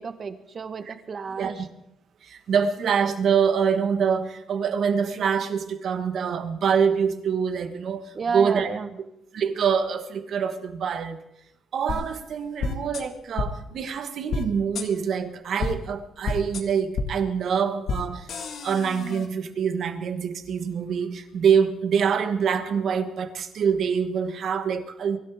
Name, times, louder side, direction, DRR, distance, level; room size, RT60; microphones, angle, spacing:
voice 1, 0.0-1.7 8.1-8.9, right 5 dB, 45° right, 1.2 m, -31 dB
voice 2, 2.2-8.7 9.3-11.2 11.7-18.3 18.6-25.2, right 7 dB, 65° right, 1.4 m, -25 dB
sound 1, 11.9-12.0 12.6-13.0 13.4-13.5 14.3-14.4 14.7-14.9 15.6-15.7 16.2-16.6 16.9-17.1 17.9-18.0 18.3-19.3, left 4 dB, 65° left, 1.8 m, -28 dB
23.5 x 12.5 x 3.6 m
cardioid pair, 90°, 0 cm